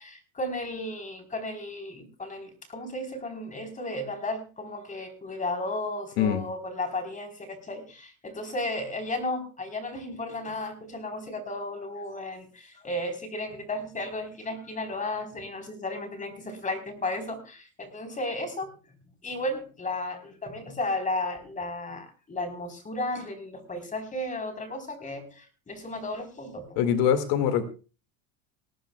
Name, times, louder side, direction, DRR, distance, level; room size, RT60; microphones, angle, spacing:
voice 1, 0.0-18.7 19.2-26.8, left 2 dB, 20° left, 5 dB, 4.1 m, -34 dB
voice 2, 26.8-27.6, left 9 dB, 65° left, 8 dB, 2.2 m, -23 dB
18.5 x 18.0 x 2.3 m, 0.35 s
supercardioid pair, 130°, 41 cm